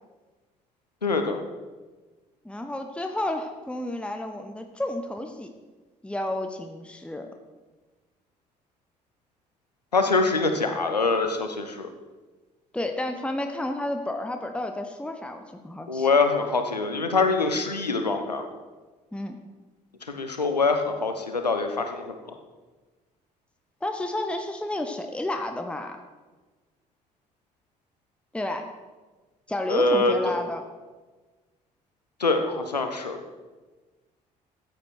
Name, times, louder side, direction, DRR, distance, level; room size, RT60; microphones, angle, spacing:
voice 1, 1.0-1.4 9.9-11.9 15.9-18.5 20.1-22.3 29.7-30.3 32.2-33.2, left 3 dB, 90° left, 6 dB, 0.9 m, -24 dB
voice 2, 2.4-5.5 6.0-7.3 12.7-16.1 19.1-19.4 23.8-26.0 28.3-28.7 29.5-30.6, left 1 dB, 5° left, 6 dB, 1.2 m, -31 dB
14.5 x 9.4 x 4.5 m, 1.3 s
figure-of-eight pair, 45°, 20 cm